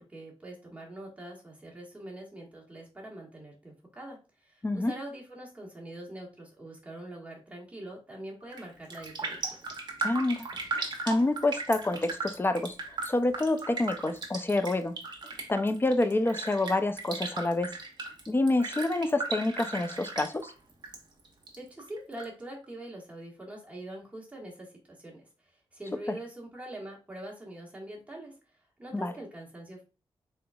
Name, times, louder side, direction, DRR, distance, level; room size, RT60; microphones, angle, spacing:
voice 1, 0.0-9.6 21.6-25.3 25.7-28.4 28.8-29.8, right 1 dB, 15° right, -3 dB, 1.5 m, -44 dB
Raindrop, 8.4-8.6 8.9-21.0 21.2-22.2 22.6-22.7, right 3 dB, 45° right, 1.0 m, -37 dB
voice 2, 10.0-10.5 10.8-12.8 13.0-15.0 15.5-17.7 18.3-20.5 26.1-26.2 28.9-29.1, left 2 dB, 20° left, 9 dB, 0.4 m, -27 dB
3.9 x 3.8 x 2.3 m, 0.31 s
wide cardioid pair, 95°, 10 cm